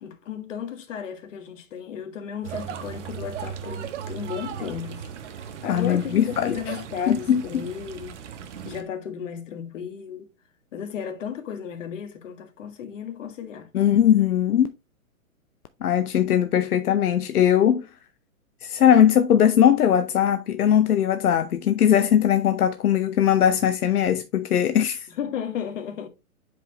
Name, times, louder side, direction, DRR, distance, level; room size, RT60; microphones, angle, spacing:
voice 1, 0.0-5.1 5.6-8.2 8.6-10.3 10.7-13.7 25.1-26.1, left 8 dB, 60° left, 1.7 m, -34 dB
sound 1, 2.4-8.8, right 8 dB, 55° right, 1.2 m, -37 dB
voice 2, 5.7-6.6 7.1-7.7 13.7-14.7 15.8-17.9 18.6-25.1, left 9 dB, 85° left, 0.7 m, -20 dB
7.9 x 4.9 x 2.8 m
hypercardioid pair, 140°, 43 cm